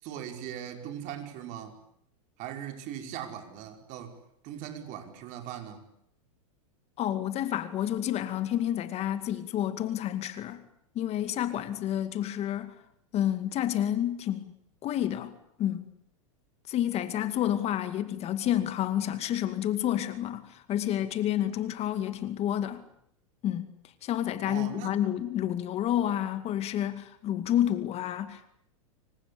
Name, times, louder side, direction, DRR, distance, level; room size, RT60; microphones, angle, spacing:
voice 1, 0.0-1.8 2.4-4.2 4.4-5.8 24.5-25.0, right 10 dB, 50° right, 5.3 m, -40 dB
voice 2, 7.0-10.6 11.0-12.7 13.1-14.5 14.8-15.8 16.7-22.8 23.4-23.7 24.0-28.5, left 11 dB, 35° left, 2.3 m, -29 dB
26.5 x 24.5 x 8.6 m
hypercardioid pair, 115°, 18 cm